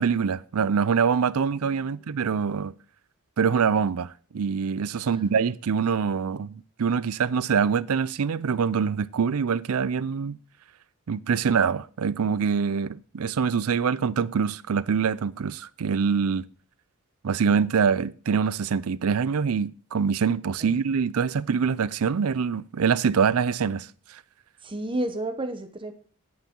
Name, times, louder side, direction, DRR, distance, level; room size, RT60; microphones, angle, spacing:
voice 1, 0.0-2.7 3.4-10.4 11.1-16.4 17.2-24.2, right 6 dB, 80° right, 0.5 m, -24 dB
voice 2, 24.6-25.9, right 1 dB, 25° right, 0.9 m, -32 dB
9.6 x 9.2 x 4.4 m
head